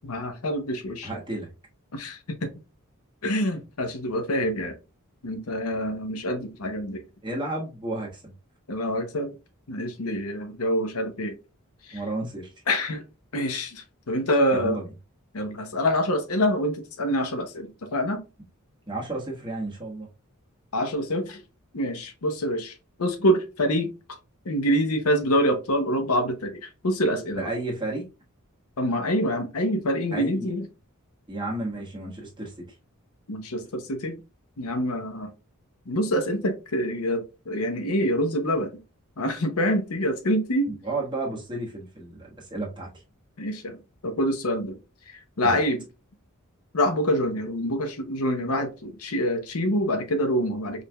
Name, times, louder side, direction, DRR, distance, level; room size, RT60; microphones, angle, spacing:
voice 1, 0.0-1.1 1.9-2.5 3.2-4.8 5.2-7.0 8.7-9.3 9.7-11.4 11.9-12.0 12.7-13.0 13.3-14.8 15.3-18.2 20.7-21.4 21.7-23.9 24.5-27.5 28.8-30.7 33.3-34.2 34.6-35.3 35.9-38.7 39.2-40.7 43.4-43.8 44.0-44.8 45.4-45.8 46.7-50.8, equal, 80° left, 0.8 m, -26 dB
voice 2, 1.0-1.5 7.2-8.3 11.9-12.5 14.5-14.9 18.9-20.1 27.4-28.0 30.1-30.5 31.3-32.5 40.7-42.9 45.4-45.6, right 2 dB, 20° right, 1.4 m, -32 dB
4.9 x 3.3 x 2.3 m
head